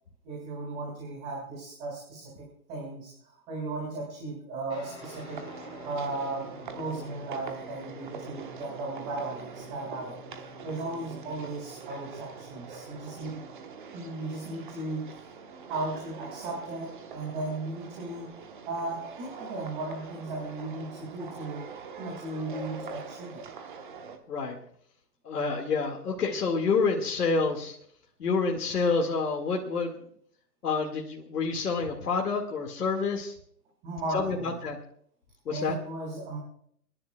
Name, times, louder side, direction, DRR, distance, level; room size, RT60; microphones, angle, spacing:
voice 1, 0.2-5.5 5.8-10.2 10.6-13.4 13.9-15.2 15.6-18.3 18.7-21.7 22.0-23.5 33.8-34.6 35.5-36.4, right 2 dB, 15° right, -1 dB, 1.9 m, -36 dB
Guitar, 4.7-13.6, left 3 dB, 10° left, 4.0 m, -50 dB
sound 1, 5.0-24.2, right 5 dB, 30° right, 1.1 m, -44 dB
voice 2, 25.2-27.8 28.2-29.9 30.6-33.3 34.1-34.8 35.5-35.8, left 4 dB, 65° left, 1 dB, 2.0 m, -28 dB
29.5 x 10.5 x 2.3 m, 0.63 s
hypercardioid pair, 165°, 49 cm